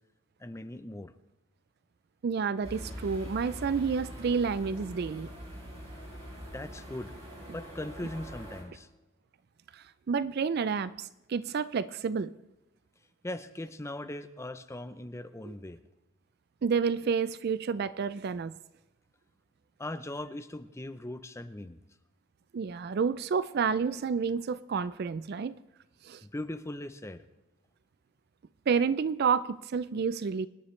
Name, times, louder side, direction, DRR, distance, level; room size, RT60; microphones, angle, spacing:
voice 1, 0.4-1.1 6.5-7.1 7.5-8.9 13.2-15.8 19.8-21.8 26.2-27.2, left 1 dB, 15° left, 0.6 m, -39 dB
voice 2, 2.2-5.3 9.7-12.3 15.5-15.6 16.6-18.5 22.5-25.5 26.0-26.2 28.7-30.5, right 6 dB, 50° right, 0.4 m, -30 dB
sound 1, 2.6-8.6, equal, 30° right, 4.3 m, -43 dB
25.0 x 10.0 x 3.2 m
head